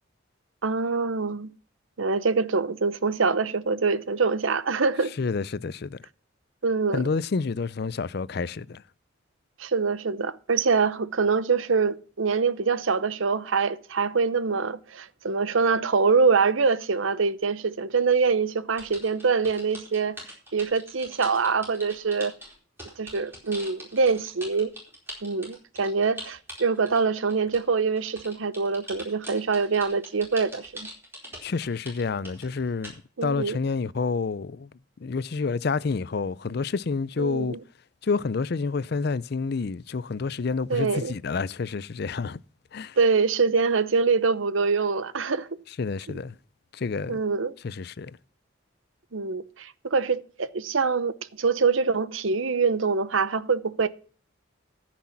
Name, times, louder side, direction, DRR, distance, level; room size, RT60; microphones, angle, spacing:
voice 1, 0.6-1.5 2.0-5.1 6.6-7.0 9.6-20.2 20.5-22.3 23.0-24.7 25.2-30.9 33.2-33.6 37.2-37.6 40.7-41.1 43.0-45.5 47.1-47.5 49.1-53.9, right 4 dB, 75° right, 0.8 m, -24 dB
voice 2, 5.2-6.0 6.9-8.8 31.4-34.7 35.0-37.6 38.0-42.4 42.7-43.0 45.8-46.4 46.7-47.2 47.6-48.2, left 4 dB, 50° left, 0.4 m, -29 dB
sound 1, 18.7-27.7 28.0-33.0, equal, 10° right, 4.4 m, -42 dB
14.5 x 6.2 x 5.8 m
head